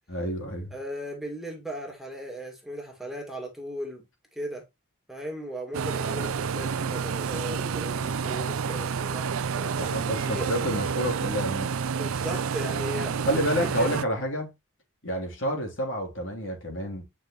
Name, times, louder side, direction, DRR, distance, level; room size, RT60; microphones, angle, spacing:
voice 1, 0.1-0.7 9.8-11.7 13.2-14.5 15.0-17.0, equal, 65° left, 3.4 m, -29 dB
voice 2, 0.7-4.0 4.3-4.6 5.1-9.8 10.3-10.5 12.0-14.0, equal, ahead, 2.2 m, -37 dB
sound 1, 5.7-14.0, right 6 dB, 85° right, 0.5 m, -29 dB
8.7 x 6.0 x 3.1 m
head